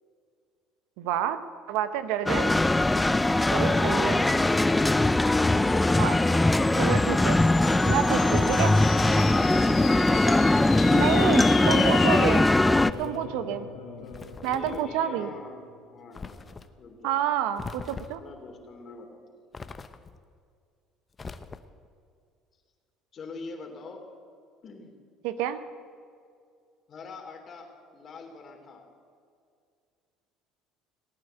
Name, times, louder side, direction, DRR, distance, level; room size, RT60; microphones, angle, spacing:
voice 1, 1.0-1.4 1.7-2.5 3.5-4.2 6.0-6.2 6.7-7.4 7.9-8.8 10.9-12.5 13.0-13.7 14.4-15.3 17.0-18.2 25.2-25.6, right 10 dB, 80° right, 11 dB, 0.9 m, -29 dB
sound 1, 2.3-12.9, left 2 dB, 10° left, 0.4 m, -21 dB
voice 2, 2.7-4.2 14.4-15.6 15.9-16.4 16.8-17.2 18.2-19.4 23.1-24.0 24.6-24.9 26.9-28.8, left 3 dB, 45° left, 3 dB, 3.1 m, -44 dB
sound 2, 5.2-15.9, left 8 dB, 75° left, 2.0 m, -38 dB
hat shake, 9.0-9.8 11.0-11.4 12.6-13.2 14.1-14.9 16.1-16.7 17.6-18.3 19.5-20.2 21.1-21.9, left 4 dB, 30° left, 0.9 m, -42 dB
18.0 x 8.9 x 8.0 m, 2.3 s
supercardioid pair, 80°, 0 cm